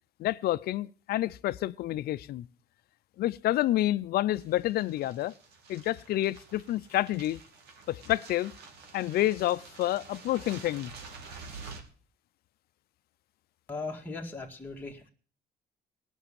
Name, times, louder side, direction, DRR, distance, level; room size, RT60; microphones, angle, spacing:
voice 1, 0.2-2.5 3.2-5.3 5.7-7.4 7.9-8.5 8.9-10.9, left 14 dB, 65° left, 0.5 m, -29 dB
sound 1, 4.3-11.8, right 4 dB, 75° right, 2.5 m, -48 dB
voice 2, 13.7-15.1, left 3 dB, 10° left, 1.9 m, -38 dB
18.5 x 6.2 x 7.0 m
cardioid pair, 110°, 17 cm